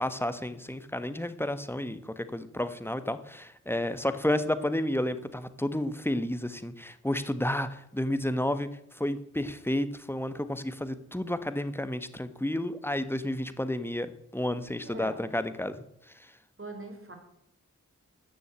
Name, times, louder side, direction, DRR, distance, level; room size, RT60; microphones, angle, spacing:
voice 1, 0.0-8.7 8.9-15.8 16.1-16.3, left 1 dB, 5° left, 11 dB, 1.3 m, -31 dB
voice 2, 14.8-15.2 16.6-17.1, right 2 dB, 40° right, 4 dB, 3.8 m, -41 dB
13.5 x 6.5 x 8.6 m, 0.81 s
cardioid pair, 45°, 31 cm